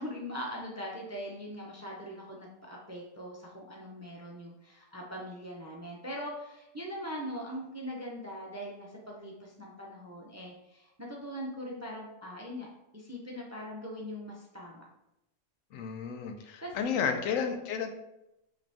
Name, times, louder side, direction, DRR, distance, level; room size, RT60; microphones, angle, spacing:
voice 1, 0.0-12.7 12.9-14.8 15.7-15.8 16.4-17.2, equal, 20° right, -2 dB, 0.4 m, -41 dB
voice 2, 15.7-17.9, left 6 dB, 85° left, 6 dB, 1.0 m, -32 dB
5.0 x 3.0 x 3.4 m, 0.87 s
omnidirectional pair, 1.3 m